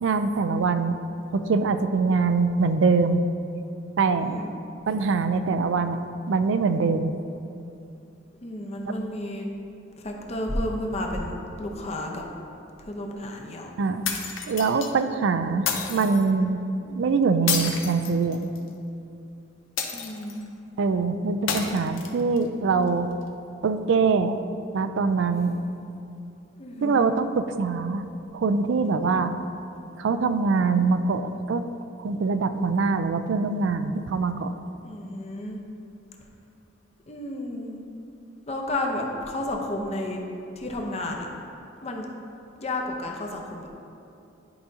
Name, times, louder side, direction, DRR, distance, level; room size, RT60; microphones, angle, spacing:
voice 1, 0.0-1.0 1.3-3.2 4.0-4.4 4.9-7.1 13.8-14.0 14.5-16.6 16.9-18.5 20.8-23.1 23.6-24.4 24.7-25.6 26.8-28.0 28.3-29.3 30.0-31.7 32.0-34.5, right 4 dB, 70° right, 10 dB, 0.4 m, -23 dB
voice 2, 4.2-4.5 8.4-9.5 10.0-12.2 12.8-13.7 19.9-20.5 21.6-21.8 26.6-27.1 34.8-35.6 37.1-37.8 38.5-40.2 40.6-41.3 41.8-42.1 42.6-43.7, left 1 dB, 35° left, 1 dB, 0.7 m, -32 dB
sound 1, 14.0-14.9 15.7-16.2 17.5-18.7 19.8-20.4 21.5-22.4, left 7 dB, 85° left, 0.7 m, -30 dB
10.5 x 5.0 x 2.7 m, 2.7 s
head